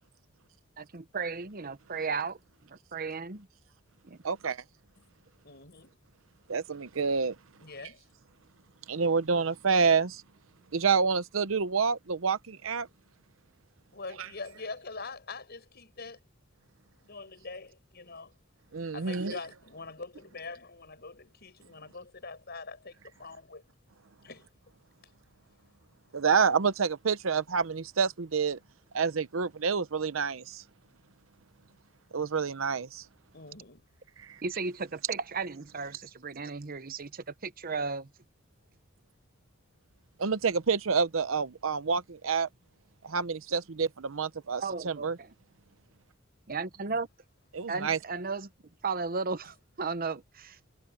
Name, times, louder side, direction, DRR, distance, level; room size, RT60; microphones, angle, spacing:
voice 1, 0.8-2.4 2.7-3.5 4.0-4.2 34.4-38.1 44.6-45.3 46.5-47.1 47.7-48.5 48.8-50.6, right 4 dB, 45° right, 1.0 m, -35 dB
voice 2, 4.2-4.6 6.5-7.4 8.9-10.2 10.7-12.9 14.2-14.3 18.7-19.4 26.1-28.6 28.9-30.6 32.1-33.1 34.2-34.4 40.2-42.5 43.0-45.2 47.5-48.0, right 5 dB, 85° right, 0.8 m, -28 dB
voice 3, 5.4-6.0 7.6-8.0 13.9-16.2 17.0-18.3 18.9-23.6 24.2-24.5 33.3-33.9 46.9-47.0, left 3 dB, 55° left, 6.9 m, -44 dB
head